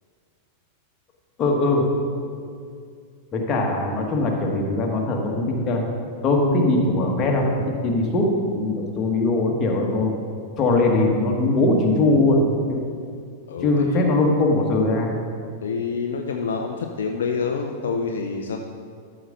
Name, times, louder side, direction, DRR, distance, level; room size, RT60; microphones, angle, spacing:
voice 1, 1.4-1.8 3.3-5.8 6.2-7.5 7.8-10.1 10.6-12.8 13.6-15.1, left 2 dB, 30° left, 0 dB, 1.6 m, -21 dB
voice 2, 15.6-18.6, left 5 dB, 65° left, 3 dB, 0.6 m, -27 dB
13.0 x 6.6 x 3.9 m, 2.3 s
figure-of-eight pair, 90°, 0 cm